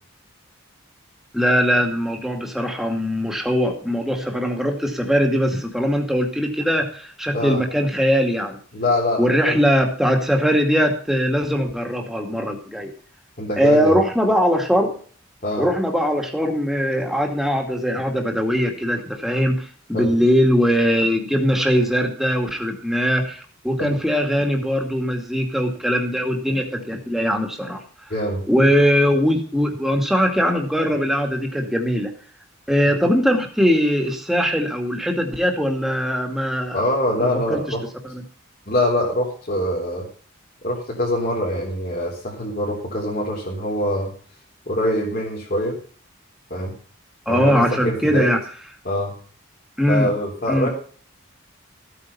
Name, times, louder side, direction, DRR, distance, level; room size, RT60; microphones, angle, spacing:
voice 1, 1.3-8.6 9.2-12.9 13.6-14.9 15.6-27.8 28.5-32.1 32.7-36.8 37.2-37.6 38.0-38.2 47.3-48.4 49.8-50.1 50.5-50.7, equal, ahead, 3 dB, 2.4 m, -21 dB
voice 2, 8.7-9.6 13.4-14.0 15.4-15.7 19.9-20.1 23.8-24.0 28.1-28.4 36.7-37.8 38.7-40.1 40.6-44.1 44.7-45.8 46.5-46.7 47.3-48.3 48.8-49.1 49.9-50.7, left 1 dB, 40° left, -5 dB, 3.9 m, -24 dB
15.0 x 9.2 x 5.6 m, 0.43 s
head